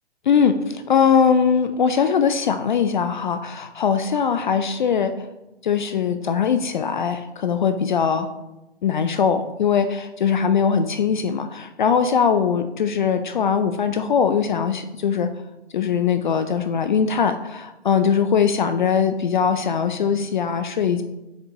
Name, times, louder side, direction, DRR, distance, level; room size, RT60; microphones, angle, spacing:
voice 1, 0.3-5.3 5.6-8.3 8.8-15.3 15.7-21.0, left 7 dB, 45° left, 9 dB, 0.4 m, -21 dB
6.7 x 5.7 x 2.8 m, 0.97 s
figure-of-eight pair, 130°, 33 cm